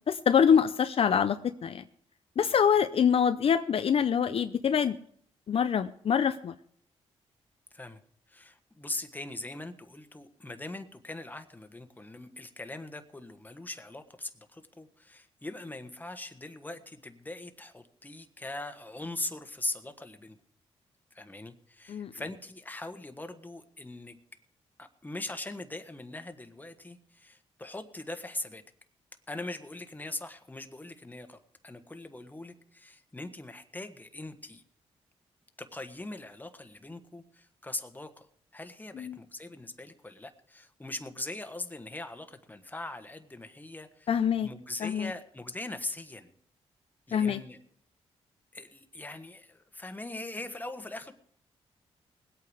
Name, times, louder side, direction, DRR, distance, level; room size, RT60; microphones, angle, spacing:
voice 1, 0.1-1.8 2.4-5.0 5.5-6.5 21.9-22.1 39.0-39.2 44.1-44.5 44.8-45.1 47.1-47.4, left 7 dB, 55° left, 10 dB, 0.6 m, -25 dB
voice 2, 8.3-20.4 21.1-24.2 24.8-28.6 29.3-31.4 31.6-34.6 35.6-38.3 38.5-46.3 47.1-47.6 48.5-51.1, left 2 dB, 15° left, 8 dB, 1.4 m, -41 dB
20.0 x 8.6 x 4.9 m, 0.64 s
cardioid pair, 75°, 11 cm